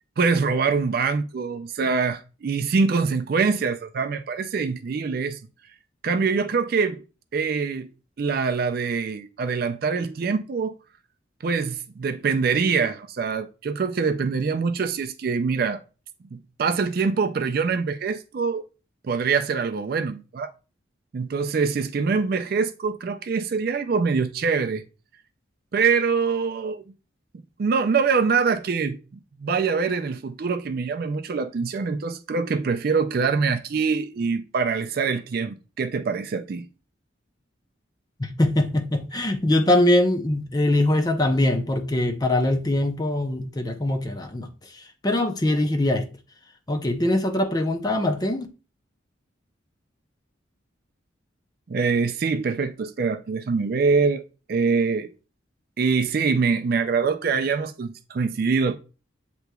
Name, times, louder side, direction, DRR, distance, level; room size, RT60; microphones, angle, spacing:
voice 1, 0.2-5.4 6.0-7.0 7.3-7.9 8.2-10.7 11.4-15.8 16.3-18.6 19.0-20.5 21.1-24.8 25.7-26.8 27.6-36.7 51.7-54.2 54.5-55.1 55.8-58.8, right 5 dB, 50° right, 0.4 m, -24 dB
voice 2, 38.2-44.5 44.7-46.1 46.7-48.5, left 1 dB, 20° left, 0.6 m, -22 dB
7.9 x 3.0 x 2.2 m
head